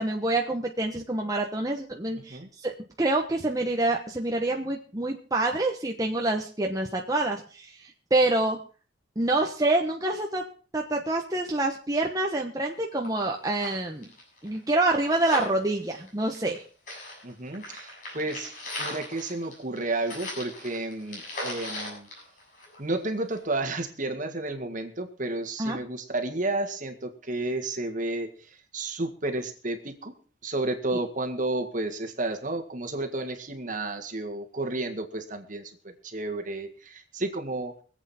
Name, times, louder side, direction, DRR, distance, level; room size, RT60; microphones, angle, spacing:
voice 1, 0.0-2.7 3.0-8.6 9.2-10.4 10.7-14.1 14.4-16.6 25.6-25.8, right 2 dB, 20° right, 1 dB, 1.1 m, -27 dB
sound 1, 12.7-12.8 13.0-13.1 13.4-16.6 16.9-23.0 23.3-23.4, left 1 dB, 45° left, 7.4 m, -38 dB
voice 2, 17.2-22.1 22.8-30.1 30.4-37.8, right 2 dB, 45° right, 6 dB, 1.9 m, -32 dB
24.0 x 8.3 x 4.3 m, 0.39 s
head